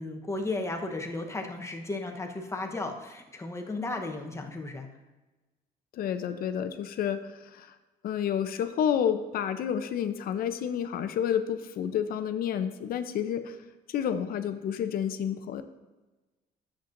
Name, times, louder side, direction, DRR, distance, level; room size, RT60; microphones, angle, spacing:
voice 1, 0.0-4.9, left 2 dB, 15° left, 3 dB, 0.9 m, -34 dB
voice 2, 5.9-7.7 8.0-13.6 13.9-15.6, left 8 dB, 60° left, 9 dB, 0.6 m, -30 dB
10.0 x 7.4 x 2.6 m, 1.1 s
cardioid pair, 110°, 17 cm